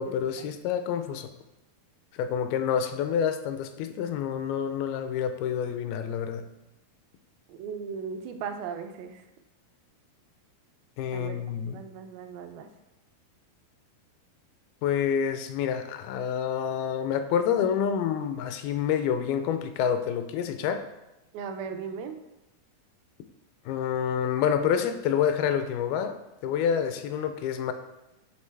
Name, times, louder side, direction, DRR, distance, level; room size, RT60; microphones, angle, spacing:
voice 1, 0.0-1.3 2.1-6.4 11.0-11.8 14.8-20.8 23.7-26.1 26.4-27.7, left 8 dB, 85° left, 8 dB, 2.4 m, -28 dB
voice 2, 7.5-9.2 11.1-11.4 11.7-12.7 21.3-22.2, right 6 dB, 80° right, 7 dB, 2.2 m, -37 dB
8.8 x 3.8 x 3.3 m, 0.95 s
omnidirectional pair, 4.4 m